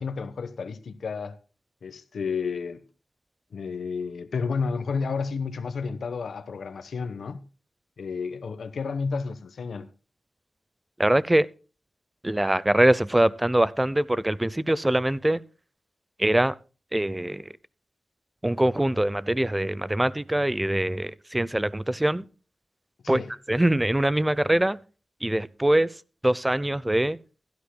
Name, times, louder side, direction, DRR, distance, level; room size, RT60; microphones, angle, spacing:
voice 1, 0.0-1.4 1.8-2.8 3.5-7.4 8.0-9.9 23.0-23.3, left 5 dB, 80° left, 1.0 m, -31 dB
voice 2, 11.0-11.5 12.2-15.4 16.2-16.6 16.9-17.5 18.4-22.2 23.1-23.2 23.5-24.8 25.2-27.2, right 1 dB, 15° right, 0.6 m, -23 dB
16.5 x 12.5 x 2.2 m
wide cardioid pair, 85°, 0 cm